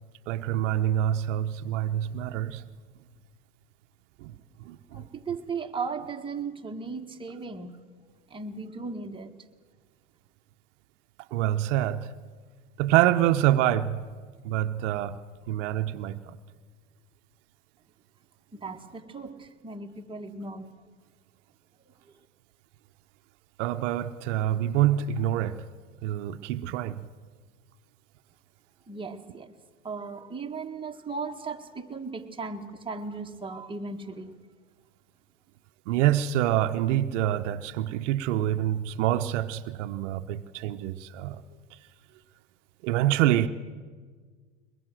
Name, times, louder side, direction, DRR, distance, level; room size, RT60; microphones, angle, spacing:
voice 1, 0.3-2.6 4.2-4.3 4.6-5.0 11.3-12.1 12.8-14.1 14.4-15.2 15.5-16.4 23.6-25.6 26.0-27.0 35.9-41.4 42.8-43.5, right 12 dB, 70° right, 0.9 m, -26 dB
voice 2, 4.9-7.8 8.3-9.3 18.5-20.7 21.8-21.9 28.9-29.5 29.8-34.4, right 4 dB, 15° right, 1.7 m, -37 dB
22.0 x 21.5 x 7.7 m
hypercardioid pair, 90°, 37 cm